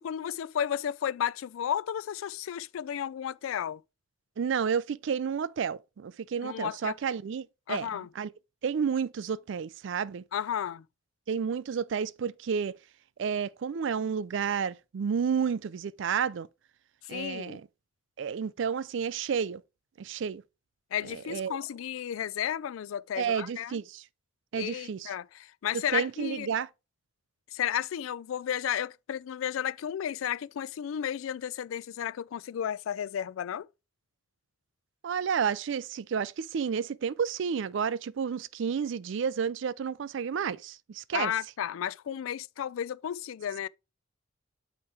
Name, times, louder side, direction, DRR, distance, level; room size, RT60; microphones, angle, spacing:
voice 1, 0.0-3.8 6.4-6.9 7.7-8.1 10.3-10.8 17.1-17.6 20.9-23.8 24.5-26.5 27.5-33.7 41.1-43.7, left 9 dB, 85° left, 0.3 m, -33 dB
voice 2, 4.4-7.9 8.2-8.3 8.6-10.2 11.3-12.8 13.2-16.5 17.1-17.6 18.2-19.6 20.0-20.4 21.1-21.6 23.2-24.0 24.5-25.1 25.9-26.7 35.0-41.3, right 7 dB, 65° right, 0.4 m, -31 dB
8.6 x 3.0 x 4.7 m
head